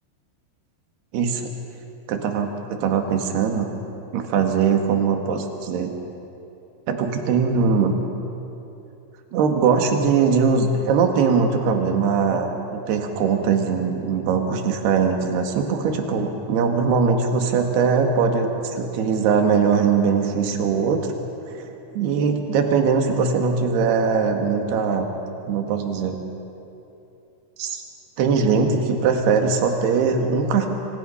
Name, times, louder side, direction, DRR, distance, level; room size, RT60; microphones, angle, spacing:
voice 1, 1.1-1.5 2.1-2.5 2.8-3.7 4.1-5.9 6.9-7.9 9.3-21.0 21.5-21.7 21.9-25.1 25.5-26.2 27.6-27.8 28.2-30.7, right 5 dB, 60° right, 4 dB, 3.6 m, -21 dB
27.5 x 27.0 x 5.7 m, 2.9 s
omnidirectional pair, 5.7 m